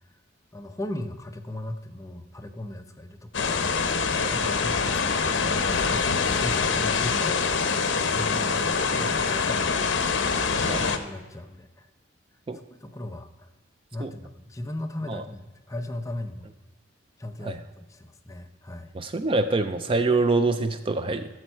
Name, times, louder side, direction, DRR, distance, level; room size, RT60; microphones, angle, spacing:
voice 1, 0.5-3.8 4.3-5.1 5.4-7.8 8.1-9.7 10.8-11.9 12.7-13.5 13.9-16.5 17.2-18.9, left 1 dB, 15° left, 6 dB, 0.6 m, -37 dB
sound 1, 3.3-11.0, left 5 dB, 65° left, 0.8 m, -25 dB
voice 2, 18.9-21.3, right 3 dB, 25° right, 10 dB, 0.3 m, -25 dB
12.5 x 7.1 x 4.5 m, 1.2 s
head